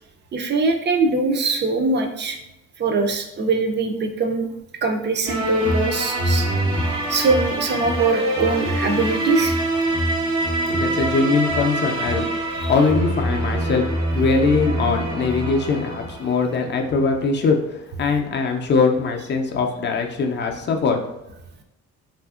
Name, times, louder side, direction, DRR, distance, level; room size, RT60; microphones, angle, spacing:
voice 1, 0.3-2.4 2.8-4.5 4.8-6.5 7.1-9.6 12.6-12.7, right 3 dB, 35° right, 4 dB, 0.4 m, -22 dB
sound 1, 5.3-16.6, right 1 dB, 65° right, 0.8 m, -24 dB
voice 2, 10.5-12.3 12.7-13.9 14.1-21.0, left 4 dB, 35° left, 3 dB, 0.4 m, -21 dB
2.7 x 2.4 x 2.4 m, 0.89 s
cardioid pair, 90°, 30 cm